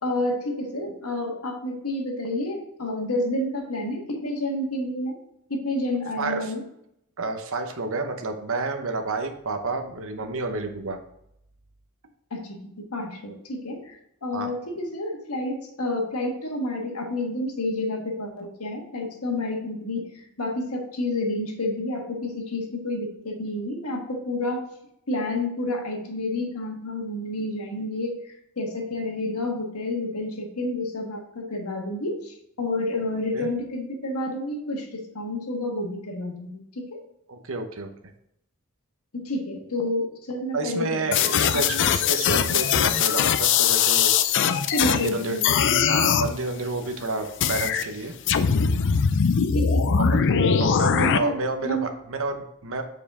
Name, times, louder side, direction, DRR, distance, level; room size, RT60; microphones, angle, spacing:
voice 1, 0.0-5.2 5.5-6.6 12.3-24.6 25.1-37.0 39.1-41.7 42.5-42.6 44.7-45.6 49.4-50.0 50.3-51.9, left 1 dB, 80° left, 2 dB, 1.5 m, -30 dB
voice 2, 6.2-6.5 7.2-11.0 14.3-14.5 33.3-33.5 37.3-37.9 40.5-45.4 45.9-48.1 50.0-50.2 50.6-52.8, right 3 dB, 65° right, 6 dB, 0.9 m, -30 dB
sound 1, 41.1-45.1 45.4-46.3 47.4-47.8 48.3-51.2, left 7 dB, 55° left, 0.4 m, -21 dB
7.0 x 4.9 x 3.6 m, 0.77 s
head